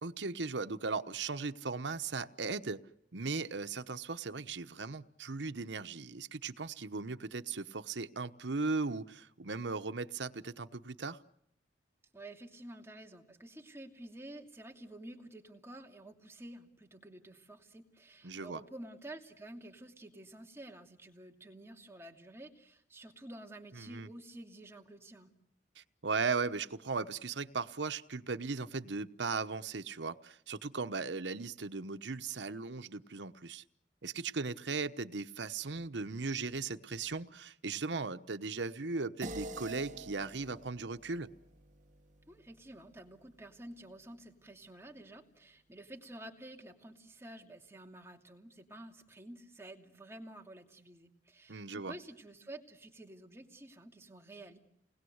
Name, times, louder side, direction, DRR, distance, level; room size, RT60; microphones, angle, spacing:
voice 1, 0.0-2.8 3.1-11.2 18.2-18.6 23.8-24.1 25.8-33.6 34.0-41.3 51.5-51.9, right 4 dB, 90° right, 9 dB, 1.0 m, -37 dB
voice 2, 12.1-25.3 42.3-54.6, right 1 dB, 15° right, 2 dB, 2.7 m, -50 dB
sound 1, 39.2-43.9, right 2 dB, 45° right, 2.4 m, -48 dB
29.5 x 20.5 x 8.0 m, 0.77 s
head